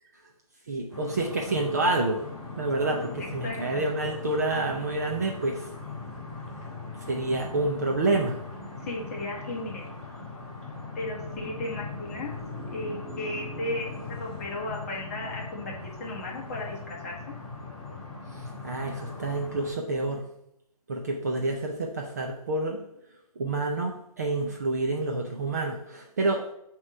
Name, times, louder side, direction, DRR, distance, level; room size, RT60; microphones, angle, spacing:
voice 1, 0.7-2.2 2.6-5.6 7.1-8.4 18.6-20.2 20.9-22.8 23.4-26.4, right 2 dB, 25° right, 0 dB, 0.5 m, -28 dB
sound 1, 0.9-19.7, left 3 dB, ahead, 1.4 m, -40 dB
voice 2, 3.2-3.8 8.9-9.8 10.9-12.3 12.7-15.7 16.0-17.3, left 2 dB, 25° left, -3 dB, 1.2 m, -35 dB
7.8 x 3.0 x 4.9 m, 0.79 s
hypercardioid pair, 175°, 19 cm